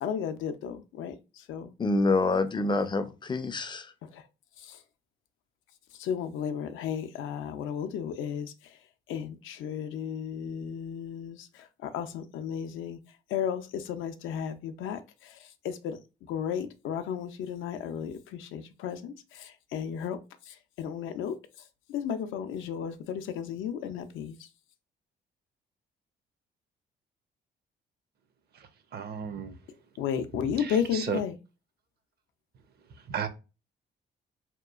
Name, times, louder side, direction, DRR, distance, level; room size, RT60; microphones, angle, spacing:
voice 1, 0.0-1.7 4.1-4.2 4.6-4.8 6.0-8.5 9.1-13.0 13.3-15.4 15.6-16.0 16.3-20.2 20.5-21.4 21.9-24.5 30.0-31.3, left 8 dB, 80° left, 0.4 m, -34 dB
voice 2, 1.8-3.9, left 3 dB, 25° left, 0.4 m, -27 dB
voice 3, 28.9-29.5 30.6-31.2 33.1-33.3, right 7 dB, 55° right, 0.5 m, -33 dB
2.8 x 2.3 x 2.3 m
cardioid pair, 90°, 20 cm